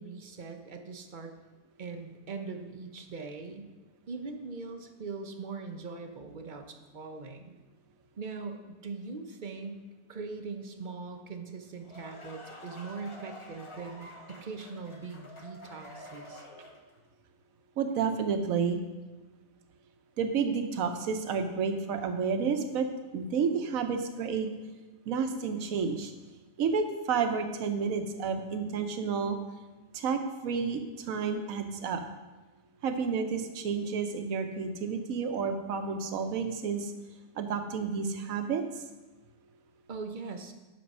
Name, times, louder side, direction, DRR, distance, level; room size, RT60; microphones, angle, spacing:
voice 1, 0.0-1.3 1.8-3.7 4.1-7.6 8.2-9.8 10.1-16.5 39.9-40.5, right 4 dB, 45° right, 6 dB, 0.7 m, -41 dB
sound 1, 11.6-17.0, left 1 dB, 25° left, 1.1 m, -48 dB
voice 2, 17.8-18.8 20.2-22.9 23.1-24.5 25.1-26.1 26.6-29.4 29.9-32.0 32.8-36.9 37.4-38.6, right 5 dB, 70° right, 7 dB, 1.2 m, -30 dB
8.6 x 6.3 x 5.4 m, 1.2 s
omnidirectional pair, 1.5 m